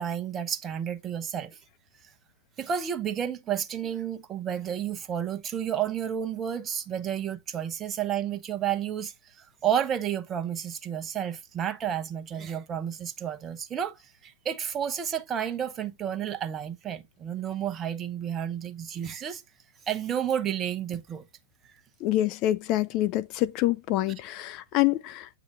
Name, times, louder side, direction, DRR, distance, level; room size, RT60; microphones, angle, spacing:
voice 1, 0.0-1.6 2.6-19.4 19.9-21.2 21.6-21.7, right 9 dB, 25° right, 1.0 m, -31 dB
voice 2, 22.0-25.3, left 15 dB, 40° left, 0.5 m, -26 dB
8.9 x 5.9 x 2.8 m
hypercardioid pair, 110°, 0 cm